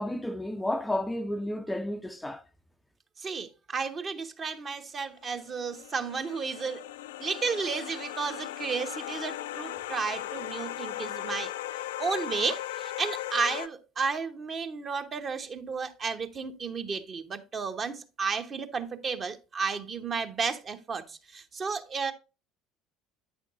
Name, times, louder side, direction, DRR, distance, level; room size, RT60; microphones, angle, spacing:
voice 1, 0.0-2.5, left 1 dB, 5° left, 0.5 m, -32 dB
voice 2, 3.2-6.9 7.2-11.5 12.0-22.1, right 5 dB, 35° right, 1.0 m, -33 dB
sound 1, 5.2-13.7, left 14 dB, 65° left, 0.3 m, -37 dB
9.1 x 6.3 x 2.5 m
figure-of-eight pair, 60°, 0 cm